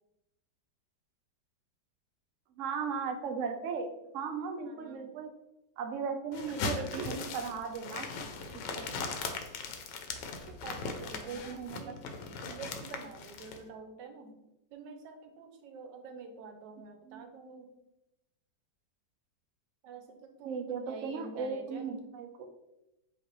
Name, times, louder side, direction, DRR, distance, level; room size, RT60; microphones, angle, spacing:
voice 1, 2.6-5.3 5.8-8.1 8.5-8.9 11.2-11.9 17.1-17.3 20.5-22.5, right 5 dB, 65° right, 5 dB, 0.7 m, -37 dB
voice 2, 4.6-5.1 6.8-7.2 10.5-12.0 12.4-14.4 14.7-17.7 19.8-22.0, right 4 dB, 85° right, 5 dB, 1.3 m, -47 dB
sound 1, 6.3-13.6, left 4 dB, 85° left, 1.3 m, -39 dB
5.0 x 3.1 x 3.0 m, 0.90 s
omnidirectional pair, 1.9 m